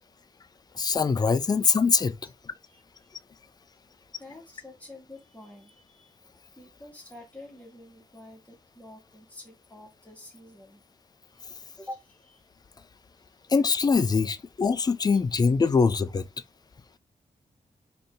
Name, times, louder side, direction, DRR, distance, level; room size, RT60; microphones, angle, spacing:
voice 1, 0.8-2.2 13.5-16.2, left 5 dB, 30° left, 0.4 m, -23 dB
voice 2, 2.7-3.1 4.2-6.2 6.6-10.8 11.3-11.5 11.8-12.5 15.1-15.2 16.1-16.2, left 1 dB, 10° left, 1.7 m, -47 dB
3.9 x 3.2 x 3.8 m
wide cardioid pair, 165°, 14 cm